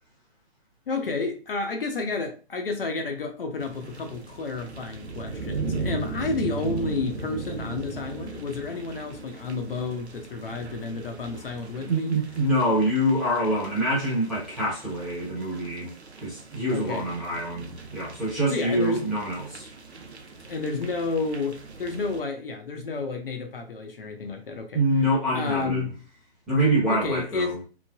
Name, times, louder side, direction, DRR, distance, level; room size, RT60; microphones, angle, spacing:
voice 1, 0.9-12.1 16.7-17.1 18.5-19.1 20.5-24.8 25.3-25.9 26.9-27.6, left 3 dB, 60° left, 0.6 m, -31 dB
sound 1, 3.6-22.2, right 4 dB, 85° right, 0.6 m, -38 dB
voice 2, 11.8-15.9 16.2-19.7 24.7-25.9 26.5-27.5, right 1 dB, ahead, 0.9 m, -25 dB
3.1 x 2.0 x 2.2 m
figure-of-eight pair, 130°, 32 cm